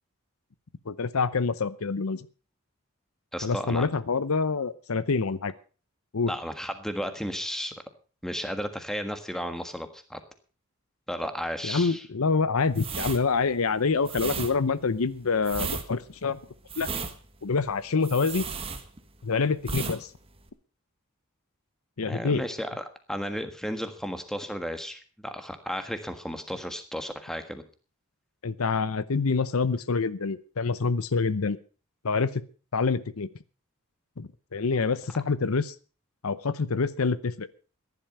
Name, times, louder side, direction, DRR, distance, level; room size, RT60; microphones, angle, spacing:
voice 1, 0.9-2.2 3.4-5.5 6.1-6.3 11.6-16.4 16.8-16.9 17.4-18.5 19.2-20.1 22.0-22.4 28.4-31.6 32.0-32.4 32.7-33.3 34.2-35.7 36.2-37.5, left 4 dB, 80° left, 16 dB, 0.7 m, -26 dB
voice 2, 3.3-3.9 6.3-7.7 8.2-10.2 11.1-12.1 22.0-27.6, equal, ahead, 8 dB, 1.5 m, -34 dB
Deodorant Spray, 12.7-19.3 19.6-20.0 20.3-20.5, right 5 dB, 25° right, 1.3 m, -35 dB
15.0 x 11.0 x 5.5 m, 0.38 s
head